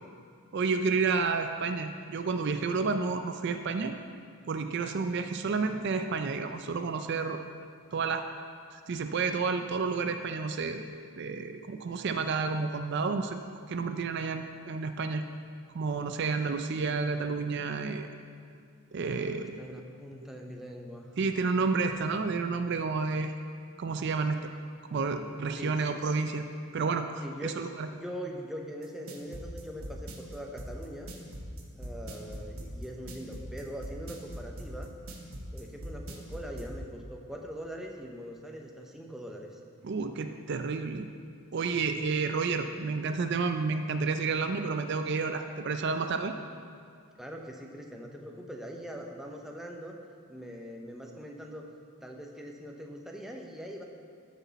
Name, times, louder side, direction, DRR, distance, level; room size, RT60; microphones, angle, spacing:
voice 1, 0.5-3.9 4.5-7.4 7.9-8.3 8.7-10.8 11.2-13.4 13.7-15.2 15.7-18.1 18.9-19.6 21.2-23.3 23.8-24.4 24.9-26.5 26.7-27.9 39.8-41.1 41.5-46.3, right 4 dB, 50° right, 7 dB, 0.4 m, -30 dB
voice 2, 19.1-21.2 25.6-26.1 27.2-31.1 31.8-34.9 35.5-39.6 47.2-50.0 50.3-51.7 52.0-53.8, equal, ahead, 1 dB, 0.7 m, -42 dB
sound 1, 28.8-36.7, right 1 dB, 75° right, 1.3 m, -40 dB
13.5 x 6.2 x 4.1 m, 2.3 s
head